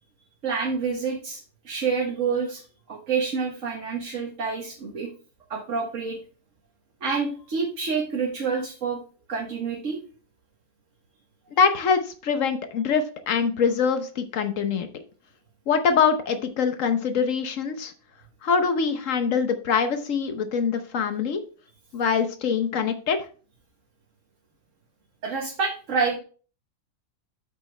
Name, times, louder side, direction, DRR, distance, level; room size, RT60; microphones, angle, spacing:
voice 1, 0.4-1.4 1.6-2.6 2.9-5.1 5.5-6.2 7.0-9.0 9.3-10.0 25.2-26.2, right 5 dB, 60° right, -1 dB, 1.7 m, -27 dB
voice 2, 11.6-14.9 15.7-17.9 18.4-21.4 21.9-23.2, left 6 dB, 65° left, 8 dB, 1.3 m, -24 dB
8.4 x 6.0 x 3.3 m, 0.39 s
omnidirectional pair, 1.5 m